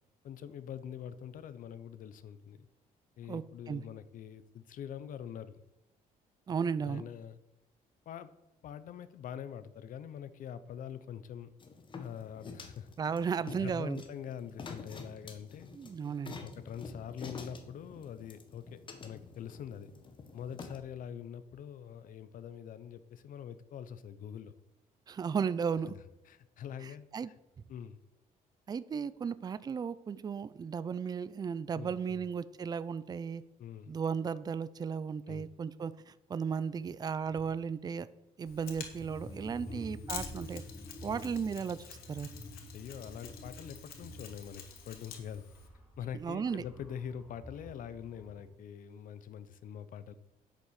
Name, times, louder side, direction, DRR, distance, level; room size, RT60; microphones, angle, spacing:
voice 1, 0.2-2.7 3.2-5.6 6.8-7.4 8.1-8.3 8.6-11.5 12.0-12.9 13.6-15.7 16.4-19.9 20.3-24.5 25.9-26.0 26.3-27.4 27.7-28.0 31.7-32.2 33.6-33.9 35.3-35.5 39.7-39.9 41.0-41.2 42.7-45.5 46.0-50.1, left 8 dB, 65° left, 14 dB, 0.9 m, -44 dB
voice 2, 3.3-3.8 6.5-7.0 13.0-14.0 15.7-16.3 25.1-25.9 27.1-27.3 28.7-33.4 33.9-38.1 38.4-40.6 41.0-42.3 46.2-46.6, right 6 dB, 25° right, 16 dB, 0.5 m, -35 dB
sound 1, 11.6-20.8, left 4 dB, 35° left, 1.7 m, -48 dB
sound 2, 36.7-36.9 37.1-37.6 38.5-48.5, left 1 dB, 5° right, 4.5 m, -49 dB
Mechanisms, 38.4-45.7, left 7 dB, 90° left, 2.5 m, -49 dB
10.0 x 7.9 x 6.5 m, 0.95 s
cardioid pair, 150°, 15 cm